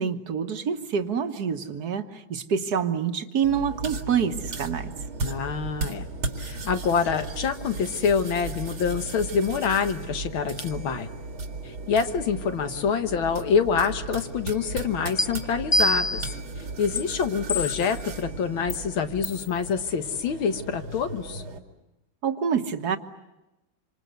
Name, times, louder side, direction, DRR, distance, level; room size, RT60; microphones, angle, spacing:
voice 1, 0.0-4.9 22.2-23.0, right 7 dB, 50° right, 7 dB, 1.8 m, -27 dB
sound 1, 3.4-21.6, right 3 dB, 85° right, 3.2 m, -36 dB
voice 2, 5.2-6.1 6.4-11.1 11.6-16.2 16.8-21.4, left 6 dB, 75° left, 8 dB, 2.2 m, -26 dB
sound 2, 15.2-15.3 15.7-16.3 17.0-17.1 17.5-18.0 18.7-18.8 19.2-19.4, left 1 dB, 20° left, 2.0 m, -25 dB
27.0 x 26.5 x 8.1 m, 0.97 s
omnidirectional pair, 2.2 m